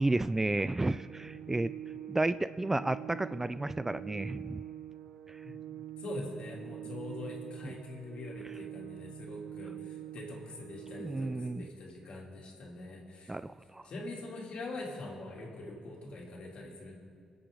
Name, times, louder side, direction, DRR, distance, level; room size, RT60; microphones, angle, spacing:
voice 1, 0.0-1.7 2.1-4.6 7.6-7.7 11.0-11.7 13.3-13.8, right 2 dB, 15° right, 15 dB, 0.3 m, -32 dB
Organ, 0.8-11.8, right 12 dB, 70° right, 0.7 m, -45 dB
voice 2, 6.0-13.3 13.8-17.0, left 2 dB, 60° left, -2 dB, 3.1 m, -43 dB
24.0 x 8.3 x 3.8 m, 2.2 s
supercardioid pair, 60°, 2 cm